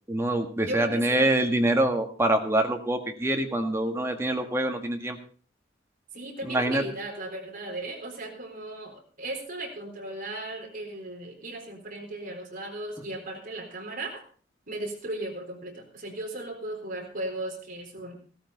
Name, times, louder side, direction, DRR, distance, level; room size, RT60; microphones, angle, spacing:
voice 1, 0.1-5.2 6.4-6.8, right 1 dB, 15° right, 4 dB, 1.6 m, -25 dB
voice 2, 0.7-1.3 6.1-14.2 14.7-18.2, right 1 dB, 50° right, 1 dB, 4.0 m, -36 dB
16.0 x 13.0 x 4.0 m, 0.41 s
head